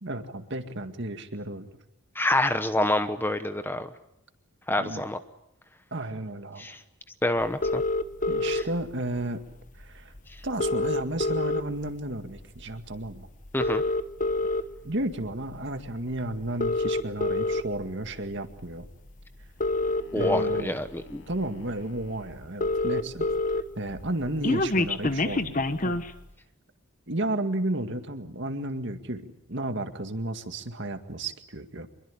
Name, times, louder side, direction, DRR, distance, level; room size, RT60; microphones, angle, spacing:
voice 1, 0.0-1.7 4.8-5.0 5.9-6.7 8.3-9.4 9.8-10.1 10.4-13.3 14.8-18.9 20.1-20.8 21.3-23.2 23.8-26.0 27.1-31.9, right 1 dB, 55° right, 8 dB, 2.0 m, -33 dB
voice 2, 2.1-3.9 4.7-5.2 6.6-6.8 7.2-7.8 8.4-8.6 13.5-13.8 20.1-21.2, left 1 dB, 10° left, 10 dB, 1.0 m, -27 dB
sound 1, 7.6-8.6 9.8-9.9 10.2-10.3 10.4-11.9 12.4-12.6 13.4-14.6 15.3-15.5 16.5-17.6 18.8-18.9 19.4-20.6 21.3-21.4 21.7-21.8 22.0-22.1 22.3-23.6 23.9-26.1, left 2 dB, 35° left, 1.2 m, -26 dB
sound 2, 19.6-22.4, left 4 dB, 65° left, 5.8 m, -53 dB
26.0 x 22.5 x 8.5 m, 0.80 s
head